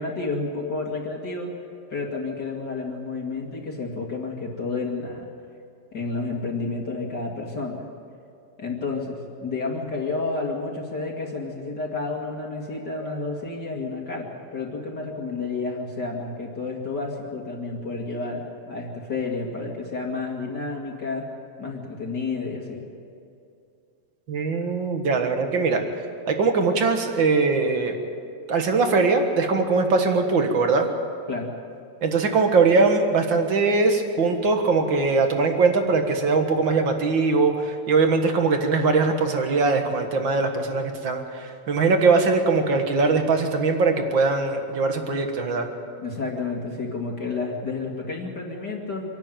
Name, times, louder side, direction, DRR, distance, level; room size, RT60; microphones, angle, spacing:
voice 1, 0.0-1.5 1.9-5.2 5.9-7.8 8.6-21.3 21.6-22.8 31.3-31.5 46.0-49.0, left 3 dB, 35° left, -1 dB, 2.1 m, -30 dB
voice 2, 24.3-25.8 26.3-28.0 28.5-30.9 32.0-45.7, right 4 dB, 45° right, 5 dB, 1.6 m, -21 dB
25.5 x 12.0 x 9.1 m, 2.5 s
omnidirectional pair, 4.1 m